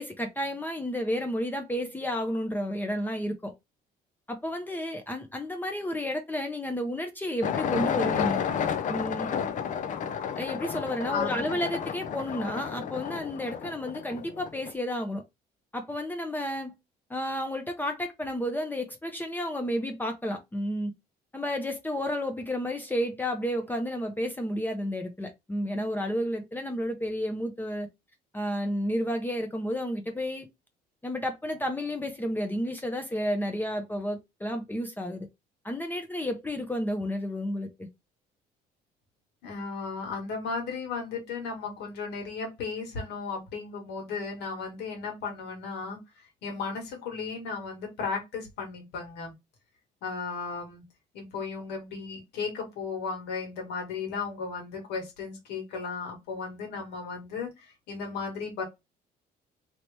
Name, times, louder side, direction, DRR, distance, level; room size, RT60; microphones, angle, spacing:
voice 1, 0.0-3.5 4.3-8.4 8.9-9.3 10.4-15.2 15.7-16.7 17.1-20.9 21.3-27.9 28.3-30.5 31.0-35.3 35.6-37.9, equal, 10° left, 0.7 m, -31 dB
sound 1, 7.4-14.7, left 8 dB, 50° left, 0.5 m, -31 dB
voice 2, 11.1-11.6 39.4-46.0 46.4-49.3 50.0-50.8 51.1-58.6, left 5 dB, 80° left, 1.7 m, -35 dB
2.9 x 2.9 x 3.3 m
cardioid pair, 110°, 17 cm